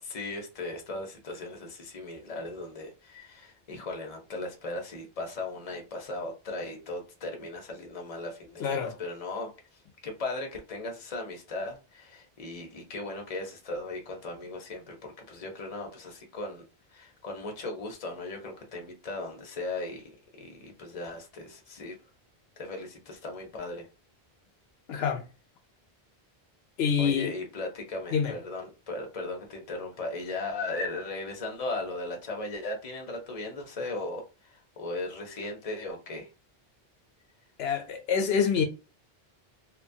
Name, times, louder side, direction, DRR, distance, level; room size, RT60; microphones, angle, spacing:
voice 1, 0.0-22.0 22.6-23.9 27.0-36.3, left 2 dB, 40° left, 0.8 m, -37 dB
voice 2, 8.6-8.9 24.9-25.3 26.8-27.3 28.1-28.3 37.6-38.6, left 6 dB, 85° left, 0.9 m, -26 dB
2.8 x 2.2 x 2.6 m
omnidirectional pair, 1.0 m